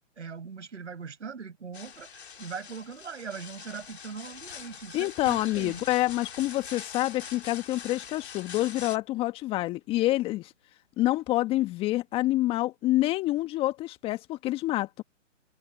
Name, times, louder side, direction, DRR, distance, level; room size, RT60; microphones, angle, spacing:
voice 1, 0.2-5.8, right 6 dB, 65° right, 7.9 m, -40 dB
sound 1, 1.7-9.0, left 7 dB, 55° left, 4.0 m, -44 dB
voice 2, 4.9-10.5 11.0-15.0, left 16 dB, 15° left, 1.5 m, -27 dB
figure-of-eight pair, 140°, 38 cm